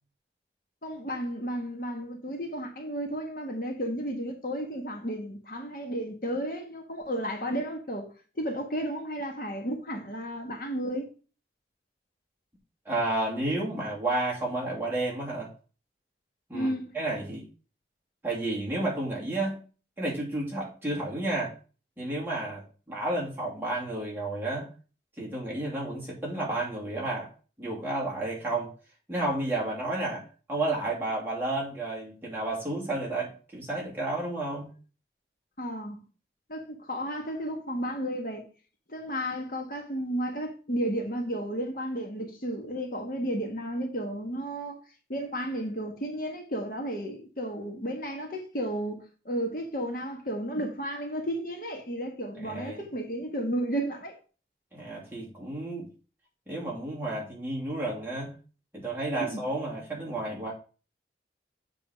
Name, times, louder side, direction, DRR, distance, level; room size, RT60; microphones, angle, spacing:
voice 1, 0.8-8.1 8.4-11.1 16.5-17.0 35.6-36.0 36.5-38.5 38.9-44.8 45.1-54.2 59.2-59.4, equal, 50° left, 1.5 m, -33 dB
voice 2, 12.9-15.5 16.5-17.5 18.2-19.6 20.0-21.5 22.0-24.7 25.2-27.3 27.6-28.7 29.1-34.7 52.4-52.8 54.7-55.9 56.5-58.3 58.7-60.5, right 2 dB, 10° right, 2.5 m, -31 dB
7.3 x 4.1 x 5.1 m
head